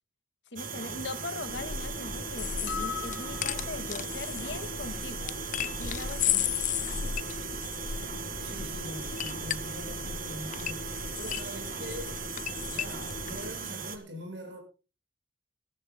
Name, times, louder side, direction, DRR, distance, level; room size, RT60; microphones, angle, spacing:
voice 1, 0.5-5.3 5.8-6.5 7.0-7.1, left 2 dB, 65° left, 2.0 m, -40 dB
sound 1, 0.6-14.0, right 5 dB, 50° right, 2.0 m, -38 dB
sound 2, 1.5-13.5, left 8 dB, 45° left, 0.5 m, -35 dB
sound 3, 2.7-4.0, left 7 dB, 85° left, 1.1 m, -38 dB
voice 2, 8.4-12.2 12.7-14.6, equal, 75° right, 6.7 m, -43 dB
21.5 x 14.5 x 2.2 m
head